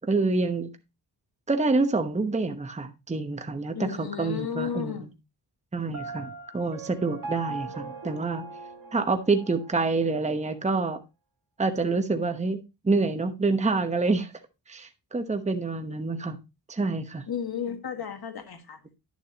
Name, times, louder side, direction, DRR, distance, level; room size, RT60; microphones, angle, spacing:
voice 1, 0.1-0.7 1.5-4.9 5.7-8.4 8.9-11.0 11.6-14.3 14.7-16.4 16.7-17.2, right 3 dB, 15° right, 1.0 m, -27 dB
voice 2, 3.7-5.1 17.3-18.8, left 8 dB, 55° left, 1.7 m, -33 dB
Piano, 5.9-9.8, right 3 dB, 45° right, 1.8 m, -39 dB
11.0 x 7.2 x 2.9 m
cardioid pair, 90°, 44 cm